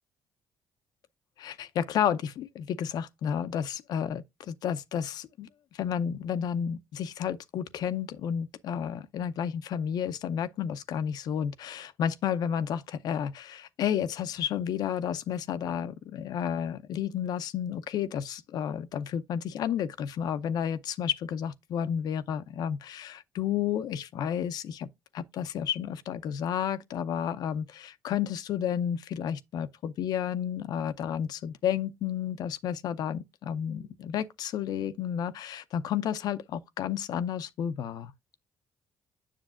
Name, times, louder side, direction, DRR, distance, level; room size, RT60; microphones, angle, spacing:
voice 1, 1.4-24.9 25.1-38.1, left 9 dB, 70° left, 0.6 m, -31 dB
7.5 x 6.6 x 2.4 m
supercardioid pair, 65°, 7 cm